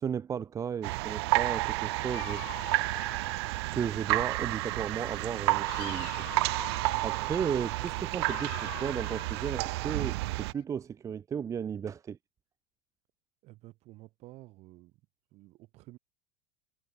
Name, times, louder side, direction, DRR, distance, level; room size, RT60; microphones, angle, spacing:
voice 1, 0.0-2.4 3.7-6.3 6.6-12.2, right 7 dB, 25° right, 0.9 m, -35 dB
sound 1, 0.8-10.5, right 22 dB, 75° right, 0.4 m, -31 dB
Dog, 2.0-4.4 4.7-10.6, left 28 dB, 70° left, 1.2 m, -47 dB
voice 2, 13.4-15.0 15.3-16.0, right 19 dB, 50° right, 6.2 m, -52 dB
supercardioid pair, 130°, 13 cm